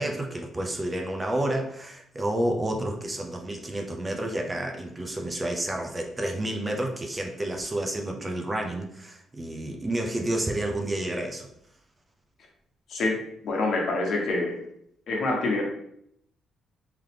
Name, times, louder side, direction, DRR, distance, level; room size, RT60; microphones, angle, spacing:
voice 1, 0.0-11.5, right 1 dB, 20° right, 2 dB, 0.7 m, -30 dB
voice 2, 13.4-14.6 15.1-15.6, left 2 dB, 65° left, -1 dB, 1.2 m, -26 dB
3.8 x 3.0 x 3.4 m, 0.71 s
cardioid pair, 90°, 0 cm